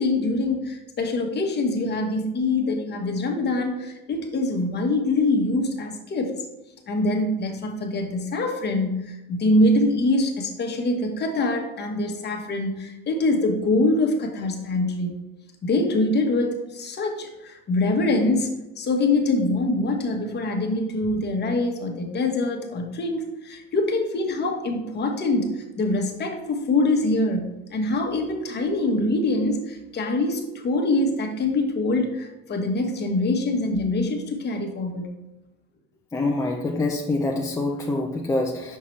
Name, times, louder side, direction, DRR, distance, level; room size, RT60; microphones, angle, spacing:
voice 1, 0.0-6.4 6.9-15.1 15.6-35.1, left 2 dB, 35° left, 3 dB, 1.2 m, -24 dB
voice 2, 36.1-38.8, left 2 dB, 10° left, 0 dB, 0.6 m, -25 dB
5.6 x 5.6 x 3.2 m, 0.98 s
supercardioid pair, 105°, 31 cm